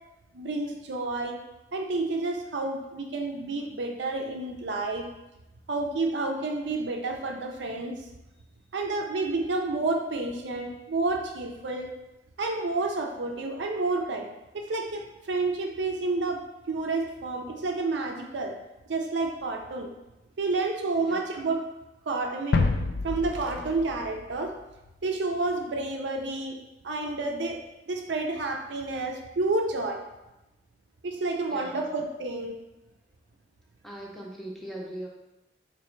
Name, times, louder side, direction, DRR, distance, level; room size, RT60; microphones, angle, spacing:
voice 1, 0.3-1.4 1.7-5.1 5.7-8.0 8.7-11.9 12.4-14.3 14.5-18.6 18.9-19.9 20.4-21.6 22.1-22.7 23.0-24.5 25.0-26.6 26.8-27.6 27.9-30.0 31.0-32.5, right 3 dB, 80° right, 3 dB, 0.5 m, -30 dB
sound 1, 22.5-25.0, left 3 dB, 70° left, 0.3 m, -28 dB
voice 2, 31.5-31.9 33.8-35.1, right 1 dB, ahead, -3 dB, 0.6 m, -40 dB
4.2 x 3.0 x 3.1 m, 0.97 s
head